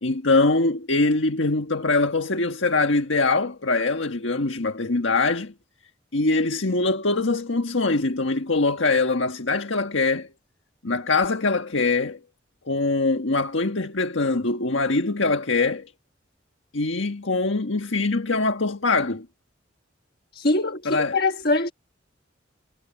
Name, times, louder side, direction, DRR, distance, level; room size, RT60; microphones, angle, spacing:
voice 1, 0.0-5.5 6.1-10.3 10.8-12.2 12.7-15.9 16.7-19.3 20.8-21.2, left 3 dB, 75° left, 1.5 m, -23 dB
voice 2, 20.3-21.7, left 2 dB, 50° left, 1.4 m, -23 dB
head